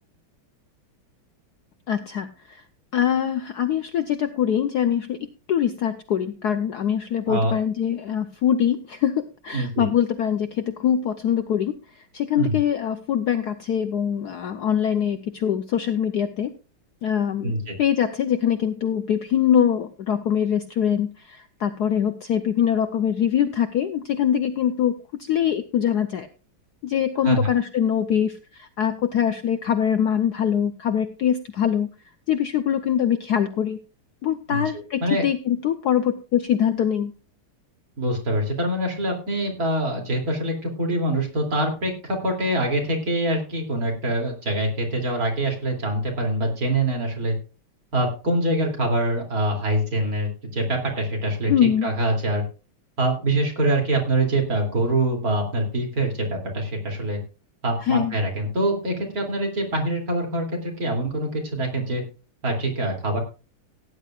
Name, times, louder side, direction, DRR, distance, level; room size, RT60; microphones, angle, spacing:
voice 1, 1.9-2.6 2.9-11.7 12.1-16.5 17.0-17.5 17.8-26.3 26.8-31.9 32.3-33.8 34.2-37.1 51.5-51.9 57.8-58.1, left 9 dB, 65° left, 9 dB, 1.0 m, -23 dB
voice 2, 9.5-9.9 12.4-12.6 17.4-17.8 27.2-27.5 34.5-34.6 35.0-35.2 38.0-47.3 47.9-51.5 51.8-52.4 53.0-57.2 57.6-62.0 62.4-63.2, right 1 dB, 45° right, 1 dB, 3.1 m, -24 dB
17.5 x 10.0 x 2.4 m, 0.34 s
omnidirectional pair, 2.3 m